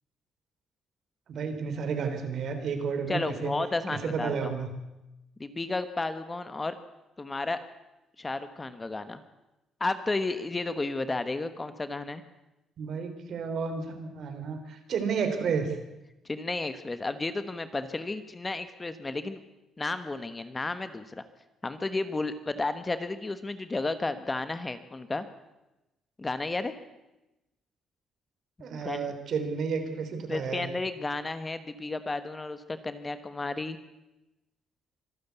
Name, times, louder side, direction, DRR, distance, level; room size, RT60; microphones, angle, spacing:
voice 1, 1.3-3.5 3.9-4.7 12.8-15.8 28.6-30.7, right 5 dB, 60° right, 8 dB, 3.3 m, -31 dB
voice 2, 3.1-4.5 5.4-6.8 7.2-7.6 8.2-9.2 9.8-12.2 16.3-19.4 19.8-21.0 21.6-25.3 26.2-26.7 28.6-29.1 30.3-33.8, left 3 dB, 20° left, 11 dB, 1.2 m, -32 dB
24.5 x 13.0 x 8.2 m, 0.98 s
cardioid pair, 130°, 0 cm